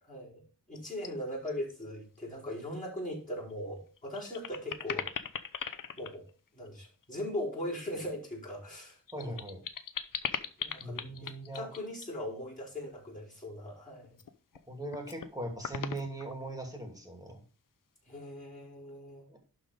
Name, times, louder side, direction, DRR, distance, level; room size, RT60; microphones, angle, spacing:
voice 1, 0.1-5.1 6.0-6.3 6.5-9.4 10.6-14.2 18.1-19.3, left 1 dB, 20° left, -6 dB, 4.7 m, -40 dB
sound 1, 0.7-1.1 1.5-1.8 2.2-2.3 3.5-3.6 4.0-7.0 8.6-12.1 14.0-14.6 14.9-15.3 15.6-16.7, left 7 dB, 65° left, 0.7 m, -39 dB
voice 2, 9.1-9.6 10.8-11.7 14.7-17.4 19.3-19.4, right 1 dB, 10° right, 2 dB, 2.5 m, -40 dB
11.5 x 4.0 x 5.0 m, 0.38 s
wide cardioid pair, 110°, 35 cm